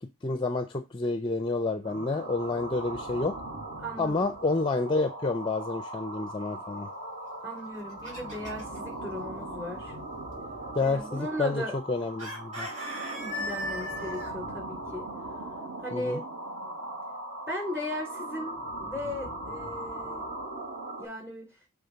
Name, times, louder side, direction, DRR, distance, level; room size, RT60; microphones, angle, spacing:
voice 1, 0.0-3.4 4.0-6.9 10.7-12.7 15.9-16.2, left 3 dB, 20° left, 0.5 m, -29 dB
sound 1, 1.8-21.0, right 1 dB, 55° right, 3.0 m, -39 dB
voice 2, 3.8-4.3 7.4-9.9 10.8-11.8 13.1-15.1 15.8-16.2 17.5-20.3 21.0-21.5, left 1 dB, 10° right, 3.3 m, -37 dB
Chicken rooster, 7.6-8.8 12.2-14.3, left 1 dB, 30° right, 3.6 m, -37 dB
7.0 x 3.6 x 5.1 m
head